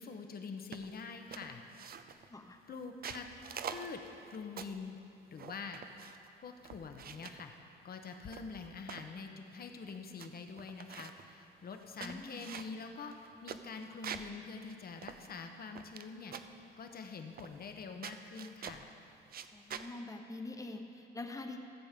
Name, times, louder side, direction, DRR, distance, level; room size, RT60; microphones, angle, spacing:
voice 1, 0.0-1.6 2.7-3.3 3.7-4.0 4.3-5.0 5.3-5.8 6.4-7.5 7.8-13.2 13.4-16.3 16.8-18.9, left 5 dB, 50° left, 5 dB, 1.1 m, -45 dB
sound 1, 0.7-1.0 1.3-2.3 2.8-4.9 5.4-6.3 6.6-7.4 8.1-9.1 9.6-9.7 9.9-10.3 10.6-11.3 11.8-14.4 14.7-14.8 15.0-16.0 16.3-16.6 17.4-17.8 18.0-18.9 19.3-19.9, right 7 dB, 50° right, 0.5 m, -46 dB
voice 2, 12.0-12.4 19.5-21.6, left 2 dB, 15° left, 4 dB, 1.0 m, -45 dB
14.0 x 7.2 x 5.2 m, 3.0 s
cardioid pair, 90°, 20 cm